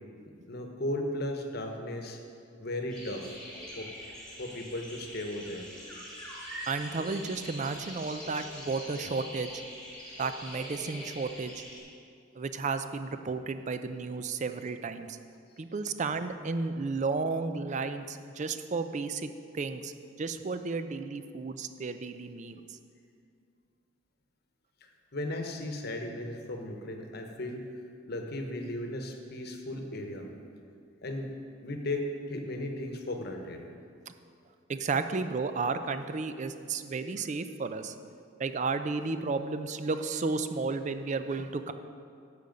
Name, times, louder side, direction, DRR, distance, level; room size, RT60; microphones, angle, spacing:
voice 1, 0.3-2.2 2.6-3.3 3.8-3.9 4.4-5.7 25.1-27.7 28.1-30.3 31.0-31.4 31.6-33.6, left 1 dB, 55° left, 4 dB, 1.0 m, -36 dB
sound 1, 2.9-11.8, equal, 5° left, 2.1 m, -44 dB
voice 2, 6.7-9.6 10.2-11.6 12.4-15.2 15.6-19.3 19.5-19.9 20.2-22.6 34.1-34.2 34.7-37.9 38.4-41.7, right 4 dB, 40° right, 10 dB, 0.4 m, -33 dB
10.5 x 6.8 x 5.2 m, 2.3 s
head